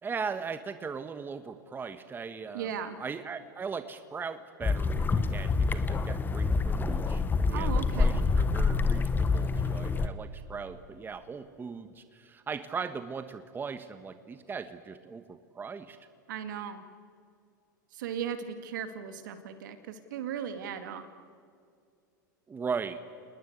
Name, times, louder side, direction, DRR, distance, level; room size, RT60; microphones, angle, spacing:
voice 1, 0.0-2.7 3.0-7.2 7.5-16.0 22.5-23.0, right 5 dB, 20° right, 10 dB, 1.4 m, -38 dB
voice 2, 2.5-3.0 7.5-8.2 16.3-16.8 17.9-21.1, right 8 dB, 70° right, 9 dB, 2.4 m, -37 dB
sound 1, 4.6-10.1, left 4 dB, 20° left, 1.3 m, -27 dB
27.5 x 20.0 x 8.1 m, 2.2 s
hypercardioid pair, 95°, 11 cm